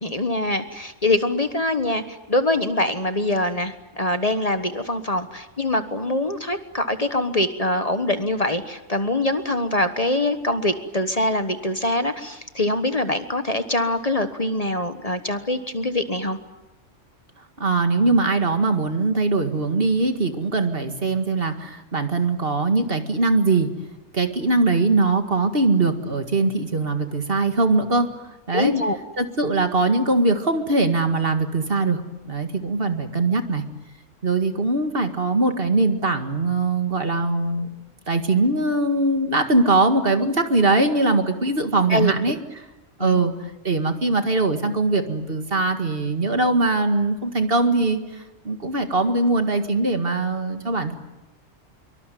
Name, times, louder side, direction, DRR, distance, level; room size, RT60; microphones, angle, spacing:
voice 1, 0.0-16.4 28.5-29.0 41.9-42.1 43.0-43.2, left 1 dB, 30° left, 9 dB, 1.4 m, -24 dB
voice 2, 17.6-23.7 24.1-28.1 28.5-28.8 29.2-32.0 32.3-33.6 34.2-37.7 38.1-42.4 43.0-50.9, right 3 dB, 50° right, 7 dB, 2.2 m, -21 dB
25.0 x 24.0 x 9.3 m, 0.99 s
omnidirectional pair, 1.3 m